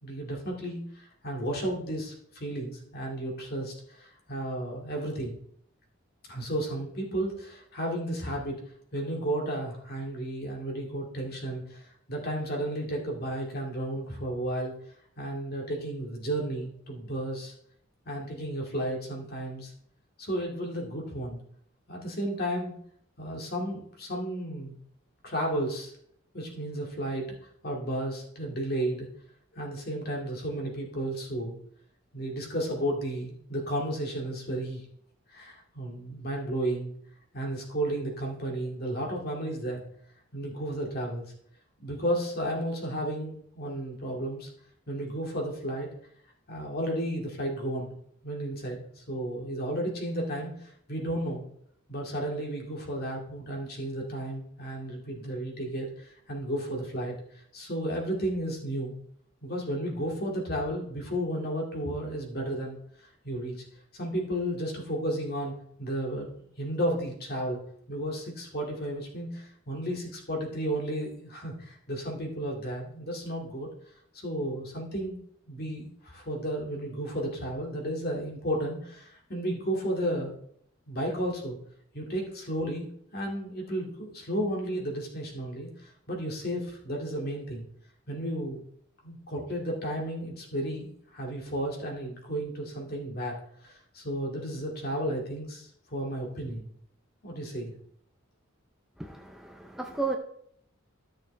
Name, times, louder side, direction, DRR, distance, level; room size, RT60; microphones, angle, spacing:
voice 1, 0.0-5.3 6.3-8.6 8.9-14.7 15.2-17.5 18.1-19.7 20.2-21.4 21.9-22.7 23.2-24.8 25.2-25.9 26.3-27.4 27.6-29.1 29.5-31.6 32.1-34.8 35.3-36.9 37.3-39.9 40.3-41.3 41.8-44.5 44.9-45.9 46.5-48.0 48.2-51.4 51.9-57.2 57.5-59.0 59.4-62.8 63.2-63.6 63.9-65.5 65.8-66.3 66.6-67.6 67.9-73.7 74.1-80.4 80.9-81.6 81.9-82.9 83.1-87.7 88.1-88.6 89.0-93.4 93.6-96.7 97.2-97.7, right 1 dB, 50° left, -1 dB, 2.2 m, -33 dB
voice 2, 99.0-100.2, right 3 dB, ahead, 2 dB, 0.5 m, -33 dB
13.0 x 6.3 x 3.3 m, 0.67 s
head